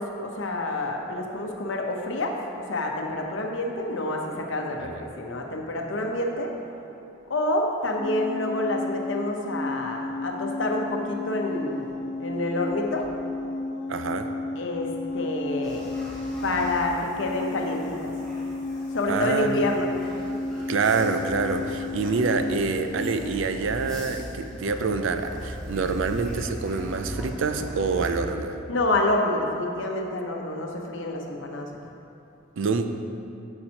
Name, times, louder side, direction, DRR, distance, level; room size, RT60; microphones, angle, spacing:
voice 1, 0.0-6.5 7.3-11.9 12.2-13.1 14.6-15.8 16.4-18.1 18.9-19.9 28.7-31.7, left 1 dB, 70° left, 1 dB, 0.8 m, -28 dB
sound 1, 8.0-23.3, left 3 dB, 40° left, 0.4 m, -33 dB
voice 2, 13.9-14.3 19.1-19.6 20.7-28.6 32.6-32.9, right 4 dB, 75° right, 8 dB, 0.4 m, -26 dB
sound 2, 15.6-28.1, equal, 5° left, 1.1 m, -40 dB
8.6 x 6.5 x 2.9 m, 2.9 s
head